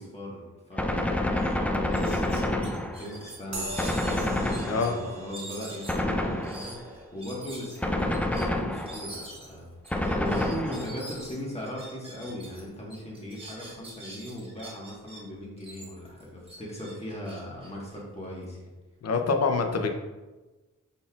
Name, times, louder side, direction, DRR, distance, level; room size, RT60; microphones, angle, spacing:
voice 1, 0.0-18.6, equal, 20° left, -4 dB, 1.4 m, -39 dB
Gunshot gunfire, 0.8-3.3 3.8-5.2 5.9-6.9 7.8-9.2 9.9-11.1, left 1 dB, 5° left, 0.3 m, -28 dB
sound 1, 1.0-1.1 1.4-1.5 1.9-4.9 5.3-12.6 12.9-15.2 15.6-18.5, right 1 dB, 20° right, 1.3 m, -45 dB
sound 2, 3.5-11.4, right 1 dB, 60° right, 1.0 m, -44 dB
voice 2, 19.0-19.9, left 4 dB, 60° left, 5 dB, 0.6 m, -25 dB
5.4 x 4.1 x 2.4 m, 1.2 s
wide cardioid pair, 95°, 30 cm